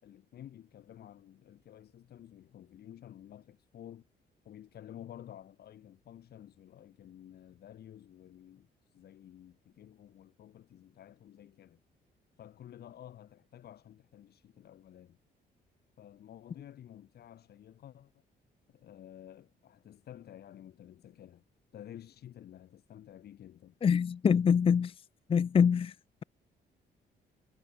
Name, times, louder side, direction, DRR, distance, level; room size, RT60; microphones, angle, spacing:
voice 1, 0.0-4.1 4.4-11.8 12.4-15.2 16.0-18.2 18.7-21.4 21.7-23.8, left 11 dB, 70° left, 6.3 m, -52 dB
voice 2, 23.8-24.9 25.3-25.9, left 7 dB, 30° left, 0.6 m, -24 dB
cardioid pair, 130°, 17 cm